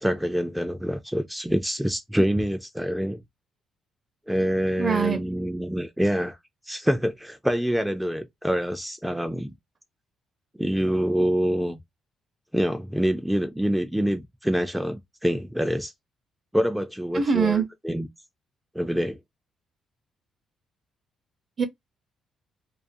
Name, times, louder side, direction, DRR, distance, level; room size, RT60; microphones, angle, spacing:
voice 1, 0.0-3.2 4.3-6.4 6.6-9.5 10.6-11.8 12.5-15.9 16.5-18.1 18.7-19.2, equal, 5° right, 0.3 m, -26 dB
voice 2, 4.8-5.2 17.1-17.7 21.6-21.7, right 6 dB, 40° right, 0.6 m, -23 dB
2.4 x 2.3 x 2.5 m
cardioid pair, 100°, 0 cm